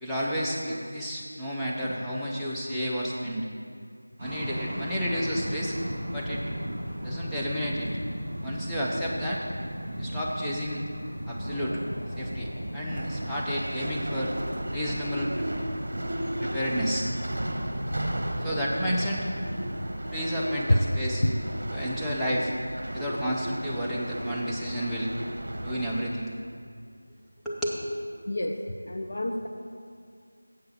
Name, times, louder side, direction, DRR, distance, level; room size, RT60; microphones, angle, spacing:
voice 1, 0.0-3.5 4.2-5.7 6.1-6.4 7.0-7.9 8.4-9.4 10.0-10.8 11.3-11.8 12.2-14.3 14.7-15.5 16.4-17.1 18.4-19.3 20.1-21.2 21.7-22.5 22.9-25.1 25.6-26.3 27.4-27.8, equal, ahead, -10 dB, 0.4 m, -31 dB
sound 1, 4.2-19.9, equal, 30° right, 2.3 m, -36 dB
sound 2, 12.9-26.0, right 1 dB, 55° right, 0.9 m, -35 dB
voice 2, 28.9-29.5, left 1 dB, 55° left, 2 dB, 0.6 m, -26 dB
7.8 x 5.3 x 7.3 m, 2.2 s
figure-of-eight pair, 175°, 0 cm